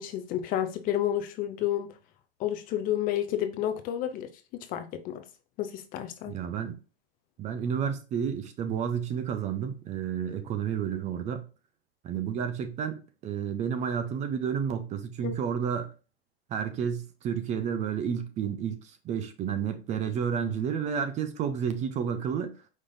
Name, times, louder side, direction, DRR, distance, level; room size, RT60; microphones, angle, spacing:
voice 1, 0.0-1.9 2.4-4.3 4.7-5.2 5.6-6.4 15.2-15.4, left 11 dB, 30° left, 0.5 m, -30 dB
voice 2, 6.3-6.8 7.4-11.4 12.0-15.9 16.5-22.6, right 7 dB, 25° right, 0.5 m, -31 dB
5.1 x 3.8 x 2.6 m
hypercardioid pair, 135°, 30 cm